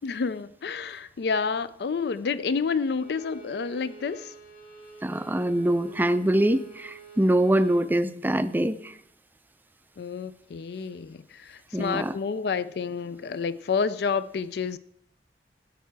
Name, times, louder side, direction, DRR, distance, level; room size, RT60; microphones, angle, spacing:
voice 1, 0.0-4.3 10.0-14.8, left 5 dB, 70° left, 0.4 m, -29 dB
Bowed string instrument, 2.8-7.9, right 6 dB, 55° left, 2.4 m, -47 dB
voice 2, 5.0-8.9 11.7-12.1, right 1 dB, 10° right, 0.4 m, -24 dB
13.5 x 9.2 x 4.7 m
head